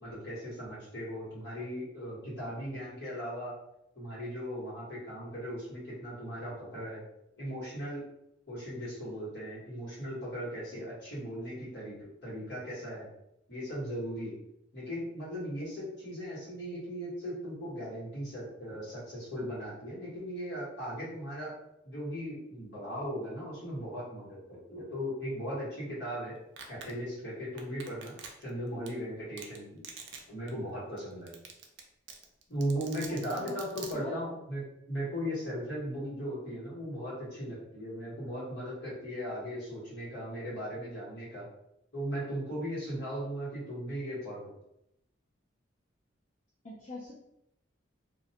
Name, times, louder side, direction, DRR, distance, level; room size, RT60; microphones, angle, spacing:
voice 1, 0.0-3.5 3.9-7.0 7.4-8.0 8.5-13.1 13.5-14.3 14.7-21.5 21.8-26.3 26.7-28.1 28.4-29.8 30.3-31.3 32.5-41.4 41.9-44.5, equal, 60° left, -7 dB, 1.3 m, -38 dB
Domestic sounds home sounds, 26.6-26.9 27.6-28.5 28.9-29.0 29.4-29.6 29.8-30.2 30.5-30.6 31.0-31.1 31.3-31.8 32.1-33.9, right 6 dB, 60° right, 0.4 m, -44 dB
voice 2, 33.1-33.6 33.9-34.2 36.0-36.2 38.0-38.5 46.6-47.1, left 1 dB, 40° left, -6 dB, 0.4 m, -44 dB
2.5 x 2.1 x 2.7 m, 0.80 s
head